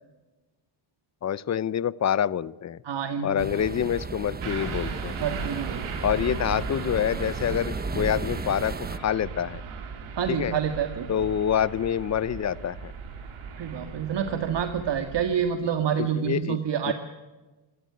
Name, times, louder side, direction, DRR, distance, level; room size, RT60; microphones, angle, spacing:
voice 1, 1.2-2.8 3.2-5.1 6.0-9.6 10.3-10.5 11.1-12.9 16.0-16.6 16.9-17.0, left 9 dB, 35° left, 19 dB, 0.7 m, -27 dB
voice 2, 2.8-3.5 5.2-5.8 10.2-11.1 13.6-16.9, right 8 dB, 60° right, 7 dB, 1.9 m, -27 dB
sound 1, 3.4-9.0, right 4 dB, 20° right, 0.9 m, -35 dB
sound 2, 4.4-15.3, right 5 dB, 90° right, 3.8 m, -37 dB
27.0 x 14.0 x 9.6 m, 1.2 s
cardioid pair, 110°, 47 cm